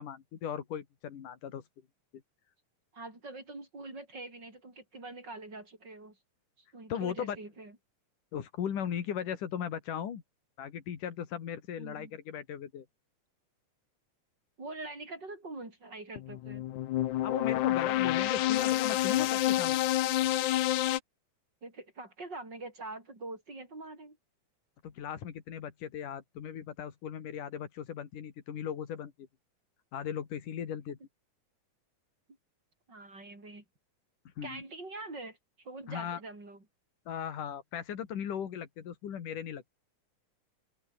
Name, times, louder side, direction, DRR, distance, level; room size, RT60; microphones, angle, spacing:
voice 1, 0.0-1.6 6.9-7.4 8.3-10.2 10.6-12.9 17.2-19.8 24.8-29.1 29.9-31.0 34.4-34.6 35.9-36.2 37.1-39.7, left 8 dB, 90° left, 4.0 m, -37 dB
voice 2, 2.9-6.2 6.6-7.8 11.8-12.1 14.6-16.7 21.6-24.2 32.9-33.6 34.4-36.6, right 2 dB, 30° right, 8.2 m, -44 dB
sound 1, 16.2-21.0, left 14 dB, 75° left, 2.4 m, -28 dB
open air
omnidirectional pair, 3.6 m